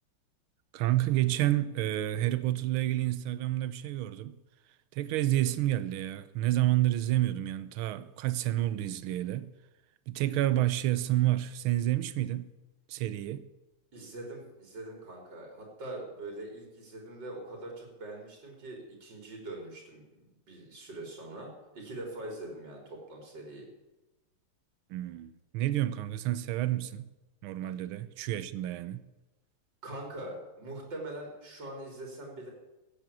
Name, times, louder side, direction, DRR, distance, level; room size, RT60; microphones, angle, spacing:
voice 1, 0.7-4.4 4.9-9.5 10.1-12.5 12.9-13.5 24.9-27.1 27.4-29.0, right 14 dB, 75° right, 1.6 m, -29 dB
voice 2, 13.9-23.7 29.8-32.5, right 1 dB, 50° right, 4.5 m, -43 dB
16.0 x 9.2 x 8.4 m
omnidirectional pair, 2.4 m